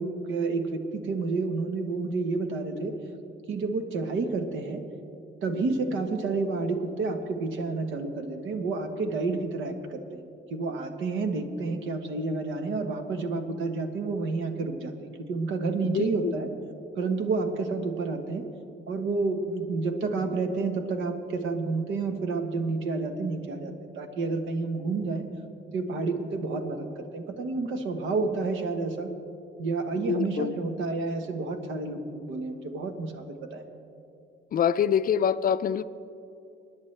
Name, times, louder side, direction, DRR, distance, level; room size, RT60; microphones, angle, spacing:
voice 1, 0.0-3.0 3.5-4.8 5.4-10.2 10.5-16.5 17.0-18.4 18.9-25.3 25.7-29.1 29.6-33.6, right 3 dB, 80° right, 6 dB, 1.2 m, -30 dB
voice 2, 15.8-16.3 30.1-30.5 34.5-35.8, left 8 dB, 45° left, 14 dB, 0.4 m, -25 dB
24.5 x 10.0 x 3.3 m, 2.7 s
cardioid pair, 90°, 20 cm